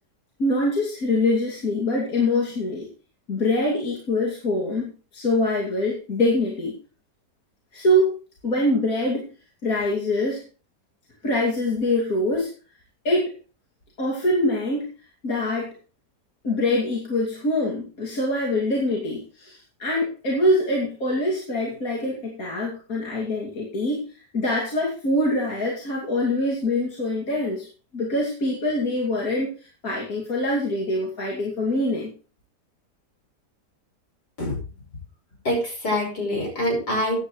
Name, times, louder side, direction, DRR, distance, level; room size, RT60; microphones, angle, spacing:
voice 1, 0.4-2.9 3.3-6.7 7.7-8.1 8.4-9.3 9.6-10.4 11.2-12.5 13.0-13.3 14.0-14.9 15.2-15.7 16.4-24.0 24.3-27.7 27.9-29.5 29.8-32.1, left 1 dB, 55° left, -3 dB, 3.0 m, -24 dB
voice 2, 35.4-37.2, left 1 dB, 75° left, 1 dB, 6.0 m, -25 dB
15.0 x 9.8 x 3.2 m, 0.35 s
omnidirectional pair, 1.8 m